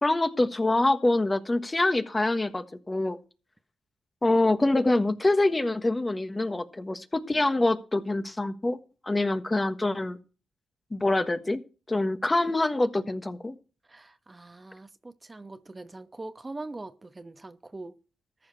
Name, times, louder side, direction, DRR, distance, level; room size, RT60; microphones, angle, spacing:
voice 1, 0.0-3.2 4.2-8.8 9.0-10.2 10.9-11.6 11.9-13.5, left 2 dB, 25° left, 1.4 m, -25 dB
voice 2, 13.9-18.0, right 2 dB, 30° right, 1.0 m, -42 dB
14.0 x 5.0 x 8.5 m
supercardioid pair, 45°, 0 cm